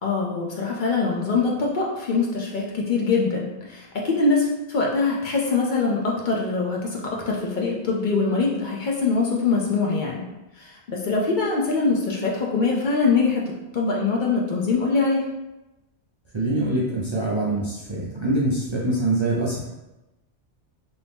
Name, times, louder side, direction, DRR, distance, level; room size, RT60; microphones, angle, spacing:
voice 1, 0.0-7.0 7.3-10.2 10.6-13.4 13.7-15.2, left 4 dB, 55° left, -2 dB, 0.5 m, -23 dB
voice 2, 16.3-19.6, right 1 dB, 45° right, -6 dB, 0.3 m, -24 dB
2.7 x 2.6 x 3.4 m, 1.0 s
omnidirectional pair, 1.2 m